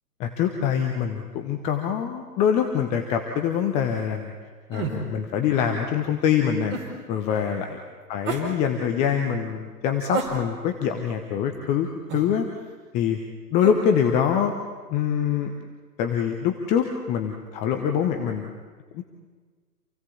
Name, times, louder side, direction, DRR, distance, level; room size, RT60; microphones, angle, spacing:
voice 1, 0.2-4.3 4.7-6.8 7.1-7.8 8.1-12.5 12.9-13.2 13.5-14.6 14.9-15.6 16.0-18.5 18.9-19.0, left 8 dB, 15° left, 5 dB, 1.0 m, -24 dB
sound 1, 4.7-5.0 6.7-6.9 8.2-8.5 10.1-10.7 12.1-12.3 13.6-13.8, right 5 dB, 20° right, 4.4 m, -30 dB
27.5 x 17.0 x 8.6 m, 1.5 s
figure-of-eight pair, 130°, 49 cm